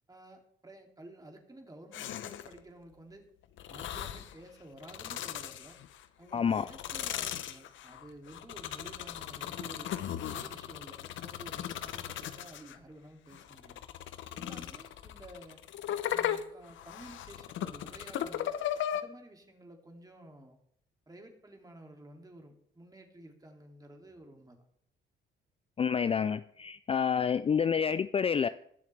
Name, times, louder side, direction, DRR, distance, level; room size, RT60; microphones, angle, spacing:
voice 1, 0.1-3.2 3.7-5.8 6.2-9.9 10.3-13.8 14.3-15.6 16.1-18.6 18.9-20.6 21.1-24.7, right 1 dB, 20° right, 3 dB, 2.6 m, -52 dB
sound 1, 1.9-2.6 3.6-4.3 4.8-6.0 6.5-12.8 13.3-19.0, left 11 dB, 75° left, 0.8 m, -37 dB
voice 2, 6.3-6.7 25.8-28.5, left 7 dB, 30° left, 13 dB, 0.4 m, -28 dB
20.5 x 7.3 x 3.4 m, 0.68 s
cardioid pair, 90°, 20 cm